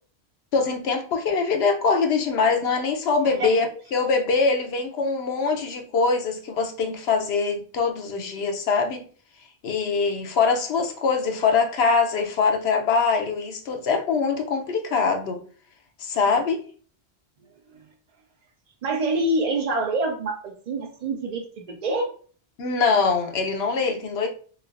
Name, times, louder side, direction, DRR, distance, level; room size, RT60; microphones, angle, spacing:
voice 1, 0.5-9.0 9.6-15.4 16.0-16.6 22.6-24.3, left 4 dB, 75° left, 0.9 m, -23 dB
voice 2, 18.8-22.1, right 2 dB, 55° right, 0.5 m, -26 dB
3.2 x 2.9 x 2.4 m
omnidirectional pair, 1.1 m